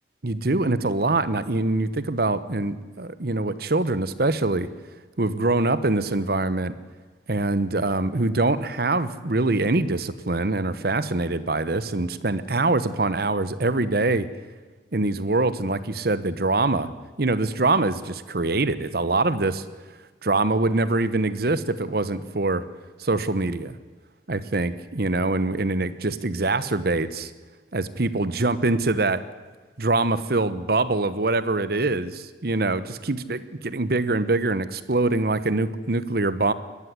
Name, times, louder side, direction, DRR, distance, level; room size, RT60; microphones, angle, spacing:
voice 1, 0.2-4.7 5.2-6.7 7.3-14.3 14.9-16.9 17.2-19.7 20.2-22.6 23.0-23.7 24.3-27.3 27.7-29.2 29.8-36.5, right 2 dB, 55° right, 14 dB, 1.0 m, -24 dB
21.0 x 14.0 x 9.5 m, 1.3 s
head